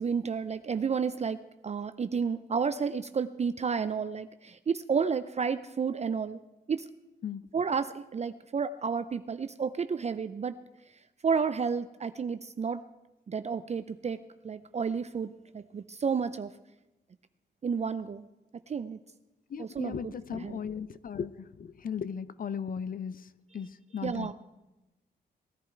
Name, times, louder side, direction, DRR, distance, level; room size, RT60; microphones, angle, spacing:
voice 1, 0.0-1.4 1.6-6.4 6.7-6.9 7.5-10.5 11.2-12.8 13.3-14.2 14.4-16.5 17.6-18.3 18.7-19.0 19.6-20.6 24.0-24.3, right 6 dB, 40° right, 12 dB, 0.5 m, -31 dB
voice 2, 19.5-24.3, left 7 dB, 55° left, 16 dB, 0.6 m, -37 dB
18.0 x 10.5 x 4.6 m, 1.0 s
cardioid pair, 75°, 18 cm